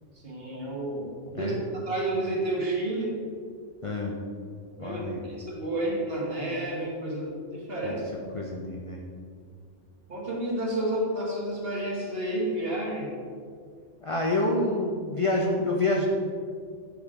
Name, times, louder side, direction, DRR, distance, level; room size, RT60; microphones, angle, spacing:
voice 1, 0.1-3.2 4.8-8.0 10.1-13.1, right 1 dB, 50° right, -4 dB, 1.6 m, -30 dB
voice 2, 3.8-4.2 4.8-5.2 7.8-8.0 8.3-9.0 14.0-16.1, left 2 dB, 45° left, -1 dB, 0.4 m, -27 dB
6.3 x 5.1 x 3.7 m, 2.1 s
omnidirectional pair, 1.3 m